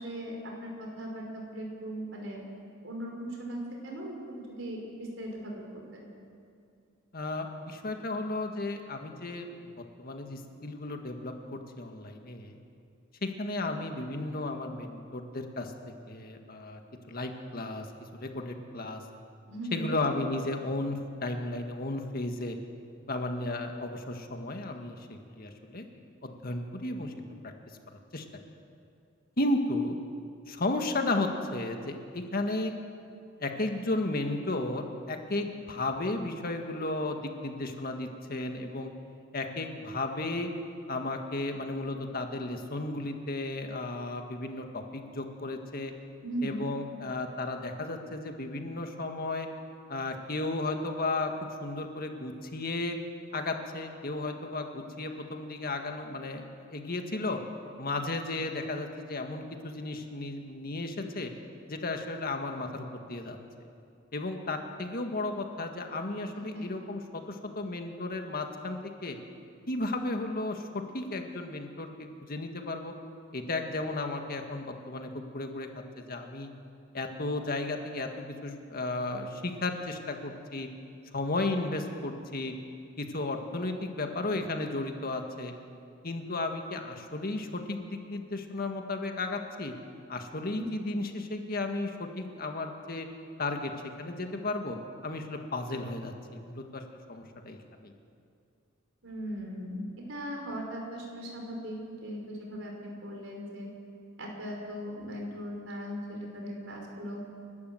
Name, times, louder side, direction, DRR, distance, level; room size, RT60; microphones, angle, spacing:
voice 1, 0.0-2.4 2.8-4.2 4.6-6.1 19.5-19.9 46.2-46.7 66.5-66.7 90.6-90.7 99.0-103.7 104.2-107.2, equal, 70° right, 0 dB, 5.2 m, -38 dB
voice 2, 7.1-9.6 10.0-12.6 13.2-15.7 16.1-16.8 17.1-17.9 18.2-19.0 19.7-22.6 23.1-25.9 26.2-27.5 28.1-28.3 29.4-30.0 30.5-32.7 33.4-38.9 39.3-40.5 40.9-45.9 46.4-49.5 49.9-51.3 51.6-53.0 53.3-57.4 57.8-61.3 61.7-63.7 64.1-69.2 69.7-70.7 70.9-72.9 73.3-75.7 76.0-76.5 76.9-80.7 81.1-82.5 83.0-85.5 86.0-89.7 90.1-93.1 93.4-93.7 94.0-94.8 95.0-97.9, left 2 dB, 50° left, 4 dB, 1.8 m, -34 dB
30.0 x 12.0 x 7.9 m, 2.4 s
head